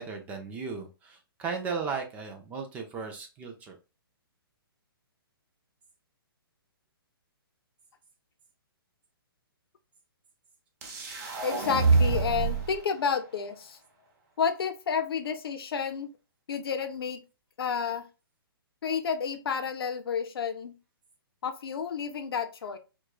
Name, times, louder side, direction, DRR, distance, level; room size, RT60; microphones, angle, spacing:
voice 1, 0.0-3.7, right 5 dB, 10° right, 0.4 m, -36 dB
sound 1, 10.8-12.8, right 4 dB, 45° right, 1.0 m, -26 dB
voice 2, 11.4-13.8 14.4-16.1 16.5-17.2 17.6-18.0 18.8-20.7 21.4-22.8, left 6 dB, 75° left, 0.7 m, -30 dB
4.4 x 2.3 x 2.3 m
hypercardioid pair, 160°, 13 cm